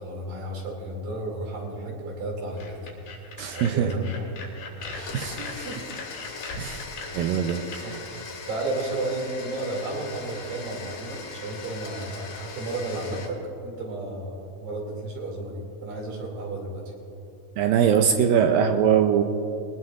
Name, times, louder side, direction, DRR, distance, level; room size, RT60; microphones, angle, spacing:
voice 1, 0.0-2.9 3.5-4.2 4.9-5.8 7.1-7.2 7.8-8.0 8.5-16.8, right 2 dB, 60° right, -1 dB, 4.3 m, -33 dB
sound 1, 2.6-7.8, left 3 dB, 85° left, 4.7 m, -39 dB
voice 2, 3.4-3.9 5.1-5.4 6.6-6.8 7.1-7.6 17.6-19.2, right 8 dB, 80° right, 4 dB, 2.2 m, -21 dB
Domestic sounds home sounds, 4.8-13.3, left 4 dB, 65° left, 3.4 m, -40 dB
22.0 x 19.0 x 2.5 m, 2.9 s
omnidirectional pair, 4.5 m